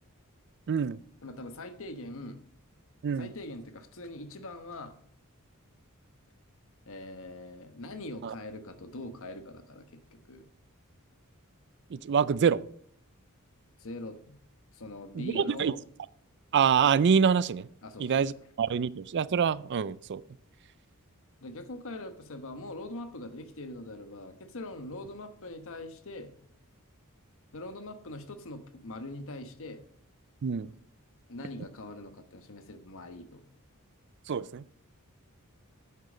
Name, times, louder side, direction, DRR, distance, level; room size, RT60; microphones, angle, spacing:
voice 1, 0.7-1.0 3.0-3.3 8.2-8.3 11.9-12.6 15.1-15.8 16.5-17.7 18.0-20.2 30.4-30.7 34.3-34.6, right 6 dB, 55° right, 0.4 m, -26 dB
voice 2, 1.2-2.4 3.2-5.0 6.9-10.4 13.8-14.4 14.7-15.8 17.8-18.3 21.4-26.3 27.5-29.8 31.3-33.4, left 1 dB, 65° left, 1.2 m, -42 dB
9.4 x 8.4 x 5.1 m
head